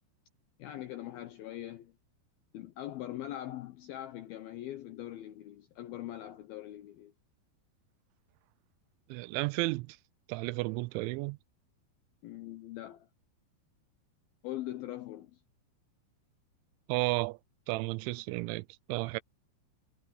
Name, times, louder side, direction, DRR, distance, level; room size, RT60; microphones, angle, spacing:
voice 1, 0.6-1.9 2.5-7.1 12.2-13.1 14.4-15.4, left 13 dB, 80° left, 2.2 m, -42 dB
voice 2, 9.1-10.0 10.3-11.4 16.9-17.4 17.7-19.2, right 23 dB, 85° right, 2.9 m, -33 dB
omnidirectional pair, 5.4 m